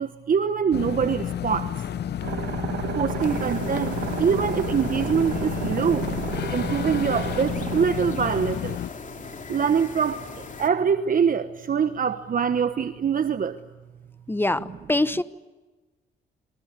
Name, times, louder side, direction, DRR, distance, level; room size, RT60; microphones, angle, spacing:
voice 1, 0.0-1.8 2.9-6.1 6.5-8.8 9.5-13.6, right 7 dB, 45° right, 1.3 m, -24 dB
sound 1, 0.7-8.9, left 10 dB, 60° left, 0.8 m, -31 dB
sound 2, 2.2-7.9, right 10 dB, 80° right, 2.0 m, -32 dB
sound 3, 3.2-10.7, left 5 dB, 40° left, 3.1 m, -40 dB
voice 2, 14.3-15.2, left 2 dB, 10° left, 1.2 m, -24 dB
27.5 x 25.0 x 8.4 m
cardioid pair, 90°, 20 cm